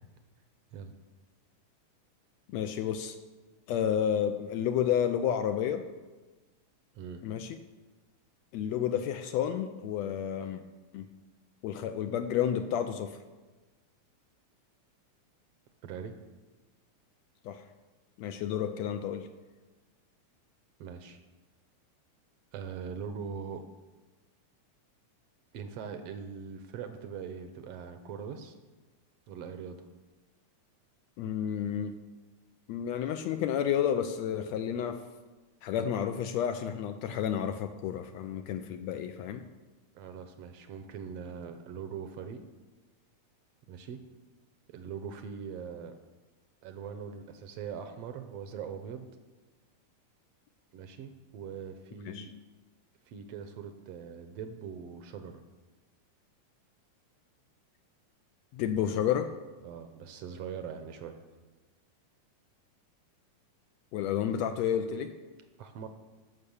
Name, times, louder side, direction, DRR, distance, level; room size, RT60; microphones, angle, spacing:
voice 1, 2.5-3.1 3.7-5.9 7.2-7.6 8.5-10.6 10.9-11.1 11.6-13.2 17.4-17.6 18.2-19.3 31.2-31.9 32.7-35.0 35.6-39.4 52.1-52.3 58.5-59.4 63.9-65.2, left 9 dB, 80° left, 8 dB, 1.6 m, -31 dB
voice 2, 15.8-16.1 20.8-21.2 22.5-23.7 25.5-28.6 29.3-29.8 39.9-42.4 43.7-44.0 44.7-46.0 46.6-49.1 50.7-52.3 53.1-55.4 59.6-61.2 65.6-65.9, right 7 dB, 75° right, 8 dB, 1.5 m, -41 dB
13.5 x 5.5 x 7.0 m, 1.2 s
omnidirectional pair, 3.5 m